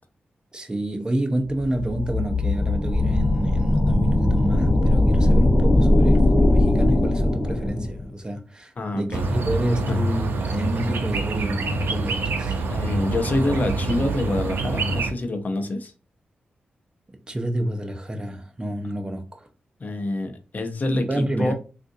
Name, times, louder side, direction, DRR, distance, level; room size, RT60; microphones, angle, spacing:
voice 1, 0.5-12.6 17.3-19.5 21.1-21.5, right 1 dB, 25° right, 0.7 m, -28 dB
sound 1, 1.5-8.0, left 1 dB, 15° left, 0.9 m, -19 dB
voice 2, 8.8-9.2 9.9-10.0 12.7-15.9 19.8-21.5, left 2 dB, 50° left, 0.7 m, -26 dB
sound 2, 9.1-15.1, right 3 dB, 80° right, 0.5 m, -26 dB
3.7 x 2.5 x 2.6 m
cardioid pair, 60°, 4 cm